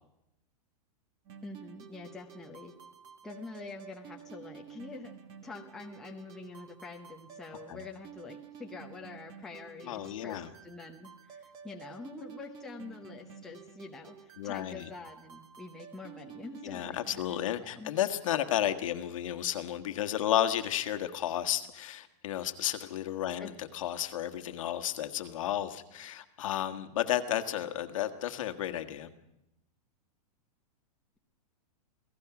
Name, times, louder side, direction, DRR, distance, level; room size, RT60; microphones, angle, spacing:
sound 1, 1.2-17.5, right 8 dB, 20° right, 1.3 m, -51 dB
voice 1, 1.4-2.7 3.2-5.1 5.4-17.2 17.6-17.9 23.4-23.5, left 3 dB, ahead, 0 dB, 0.8 m, -46 dB
voice 2, 9.9-10.5 14.4-14.9 16.6-29.1, left 11 dB, 55° left, 8 dB, 1.5 m, -32 dB
28.5 x 17.5 x 6.0 m, 0.89 s
supercardioid pair, 175°, 20 cm